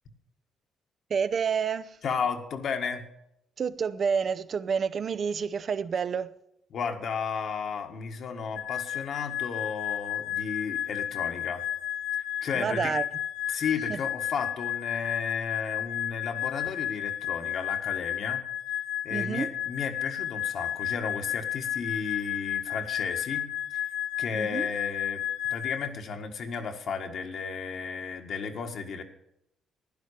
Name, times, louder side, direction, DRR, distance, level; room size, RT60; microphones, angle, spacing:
voice 1, 1.1-2.0 3.6-6.3 12.5-13.0 13.9-14.0 19.1-19.5 24.3-24.7, right 6 dB, 50° right, 0.7 m, -29 dB
voice 2, 2.0-3.0 6.7-11.6 12.1-12.9 13.5-18.4 19.0-23.4 23.7-23.8 24.2-25.2 25.5-29.0, left 5 dB, 65° left, 1.7 m, -34 dB
sound 1, 8.6-25.9, left 11 dB, 85° left, 0.4 m, -32 dB
11.0 x 10.5 x 6.7 m
cardioid pair, 90°, 0 cm